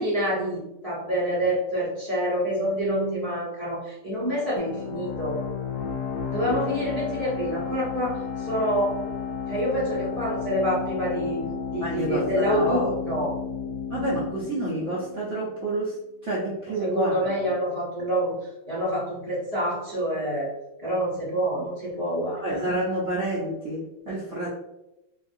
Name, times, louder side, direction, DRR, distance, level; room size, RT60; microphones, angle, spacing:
voice 1, 0.0-5.4 6.3-9.0 9.5-11.4 11.7-13.3 16.8-18.3 18.7-20.5 20.8-22.7, equal, 25° left, -8 dB, 0.9 m, -27 dB
sound 1, 4.6-15.9, left 6 dB, 75° left, 1.3 m, -33 dB
voice 2, 11.8-12.9 13.9-16.0 16.2-17.3 22.3-24.5, right 1 dB, 80° right, -7 dB, 0.6 m, -28 dB
3.4 x 2.4 x 2.6 m, 0.90 s
omnidirectional pair, 2.2 m